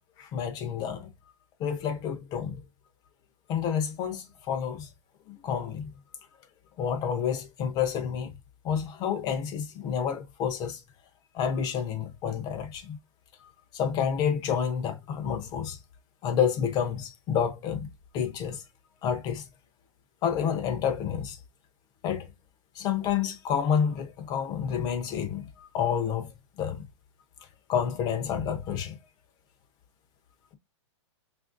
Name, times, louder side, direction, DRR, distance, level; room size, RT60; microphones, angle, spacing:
voice 1, 0.2-1.1 1.6-2.6 3.5-4.9 5.3-5.9 6.8-8.3 8.6-10.8 11.3-13.0 13.7-15.8 16.2-17.9 18.1-18.6 19.0-19.4 20.2-21.4 22.0-22.3 22.8-26.8 27.7-29.0, left 8 dB, 25° left, 0.6 m, -29 dB
5.4 x 2.5 x 2.5 m
hypercardioid pair, 150°, 16 cm